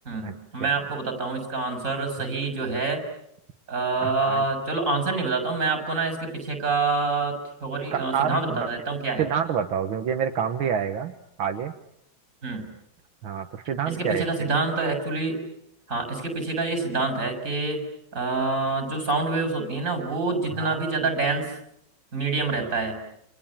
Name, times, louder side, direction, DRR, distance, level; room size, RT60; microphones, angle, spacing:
voice 1, 0.1-3.0 3.7-9.3 12.4-12.7 13.8-15.4 15.9-17.8 18.1-21.5 22.1-23.0, right 3 dB, 40° right, 7 dB, 7.2 m, -27 dB
voice 2, 4.0-4.4 7.9-8.4 9.2-11.1 11.4-11.7 13.2-14.2 20.6-20.8, right 8 dB, 80° right, 6 dB, 2.1 m, -27 dB
30.0 x 27.0 x 7.4 m, 0.77 s
omnidirectional pair, 2.2 m